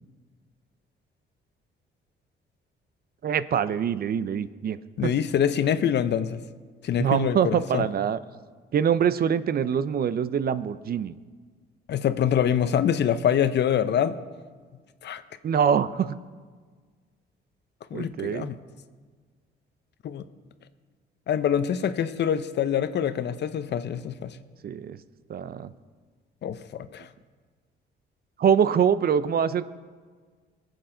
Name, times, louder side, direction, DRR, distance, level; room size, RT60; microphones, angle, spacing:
voice 1, 3.2-5.1 7.0-8.2 8.7-11.2 15.4-16.2 17.9-18.5 24.6-25.0 25.3-25.7 28.4-29.6, right 8 dB, 50° right, 15 dB, 0.5 m, -24 dB
voice 2, 5.0-6.4 6.8-7.9 11.9-14.1 15.0-15.2 17.9-18.6 20.0-20.2 21.3-24.4 26.4-27.1, left 9 dB, 60° left, 12 dB, 0.7 m, -25 dB
20.0 x 7.9 x 3.8 m, 1.5 s
cardioid pair, 90°, 20 cm